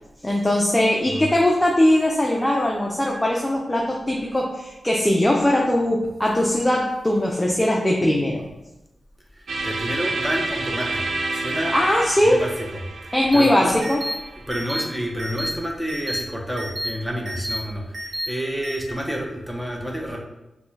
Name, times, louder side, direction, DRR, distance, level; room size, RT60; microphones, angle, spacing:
voice 1, 0.2-8.5 11.7-12.4 13.1-14.0, left 1 dB, 15° left, -1 dB, 0.6 m, -20 dB
voice 2, 9.3-11.7 12.2-13.7 14.5-20.2, equal, 5° right, 0 dB, 0.9 m, -29 dB
sound 1, 9.5-15.4, right 2 dB, 85° right, 0.6 m, -30 dB
sound 2, 13.3-13.4 13.8-14.1 14.5-14.8 15.2-15.5 15.9-16.2 16.6-16.9 17.2-17.6 17.9-18.3 18.6-18.8, equal, 60° right, 0.9 m, -29 dB
5.9 x 2.3 x 3.2 m, 0.97 s
cardioid pair, 60°, 0 cm